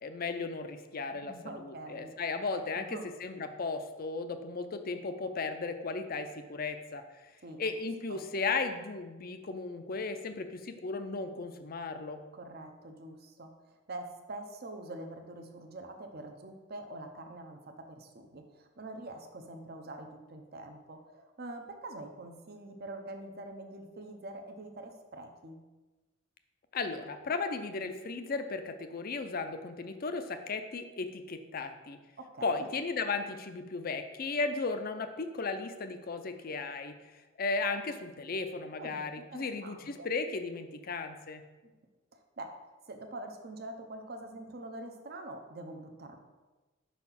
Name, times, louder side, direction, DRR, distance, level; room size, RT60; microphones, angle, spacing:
voice 1, 0.0-7.0 7.6-12.2 26.7-32.0 32.4-37.0 37.4-41.4, left 4 dB, 45° left, 8 dB, 0.5 m, -35 dB
voice 2, 1.1-2.1 2.9-3.1 7.4-7.6 8.1-8.2 12.3-25.6 32.2-32.7 38.8-39.0 39.3-40.1 42.1-42.5 42.9-46.2, right 2 dB, 50° right, 5 dB, 0.7 m, -45 dB
5.8 x 4.2 x 5.7 m, 1.2 s
head